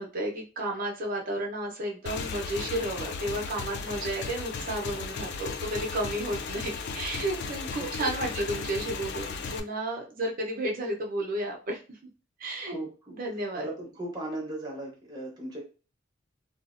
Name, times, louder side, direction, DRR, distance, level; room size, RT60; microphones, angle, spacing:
voice 1, 0.0-11.8 12.4-12.8 13.1-13.7, right 1 dB, 50° right, 0 dB, 0.7 m, -32 dB
Motorcycle / Engine, 2.1-9.6, left 5 dB, 60° left, 0.3 m, -36 dB
voice 2, 7.8-8.1 12.7-13.2 13.5-15.6, right 1 dB, 20° right, -3 dB, 0.9 m, -37 dB
2.5 x 2.0 x 2.5 m, 0.34 s
head